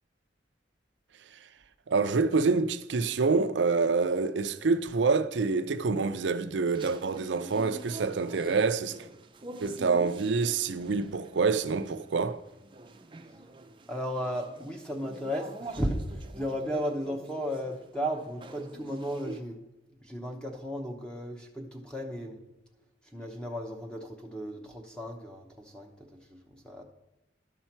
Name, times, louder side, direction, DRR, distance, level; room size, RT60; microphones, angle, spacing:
voice 1, 1.9-9.0 9.6-12.4, right 4 dB, 80° right, 0.5 m, -27 dB
sound 1, 6.6-19.4, right 2 dB, 25° right, 0.5 m, -46 dB
voice 2, 13.9-19.6 20.0-22.4 23.1-26.8, equal, 5° left, 0.8 m, -35 dB
11.5 x 5.6 x 4.4 m
head